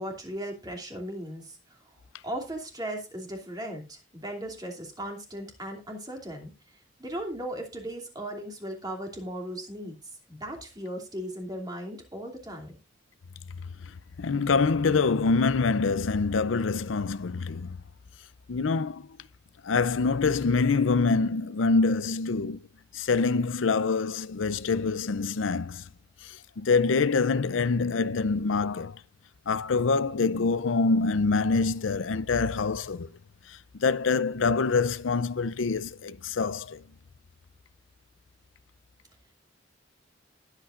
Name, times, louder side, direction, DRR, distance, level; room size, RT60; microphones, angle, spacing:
voice 1, 0.0-1.9 2.2-6.5 7.0-9.9 10.3-12.7, right 1 dB, 20° right, 2.8 m, -37 dB
voice 2, 14.2-17.8 18.5-19.1 19.6-22.6 22.9-25.8 26.2-29.0 29.5-33.1 33.5-36.8, left 4 dB, 85° left, 0.6 m, -25 dB
20.0 x 8.3 x 2.5 m
head